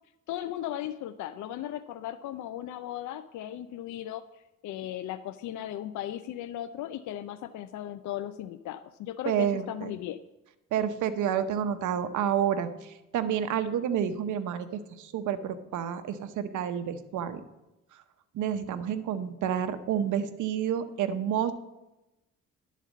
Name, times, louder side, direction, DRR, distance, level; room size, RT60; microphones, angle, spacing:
voice 1, 0.3-10.2, left 12 dB, 75° left, 11 dB, 0.5 m, -37 dB
voice 2, 9.3-9.9 10.7-17.4 18.3-21.5, right 9 dB, 75° right, 10 dB, 0.8 m, -29 dB
11.0 x 4.1 x 7.2 m, 0.98 s
cardioid pair, 90°, 30 cm